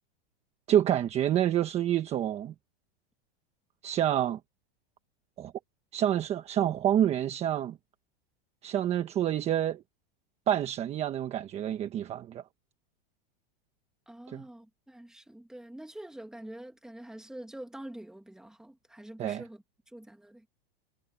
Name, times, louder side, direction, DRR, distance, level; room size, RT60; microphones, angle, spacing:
voice 1, 0.7-2.5 3.8-4.4 5.4-5.5 5.9-7.8 8.6-9.8 10.5-12.4 14.3-14.4 19.2-19.4, right 11 dB, 20° right, 1.2 m, -28 dB
voice 2, 14.1-20.5, right 1 dB, ahead, 2.1 m, -46 dB
supercardioid pair, 160°, 30 cm